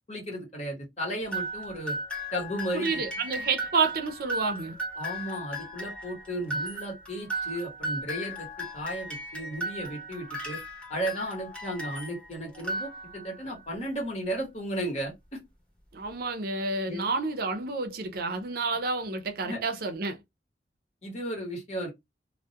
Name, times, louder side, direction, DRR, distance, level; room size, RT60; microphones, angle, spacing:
voice 1, 0.1-2.0 2.3-3.0 5.0-10.6 10.9-15.4 16.8-17.1 19.4-19.6 21.0-21.9, right 1 dB, 40° left, 1.0 m, -34 dB
sound 1, 1.3-12.2 12.6-13.4, right 1 dB, 5° left, 0.9 m, -36 dB
voice 2, 2.7-4.8 15.9-20.2, right 4 dB, 55° right, 0.5 m, -29 dB
2.3 x 2.0 x 2.7 m
head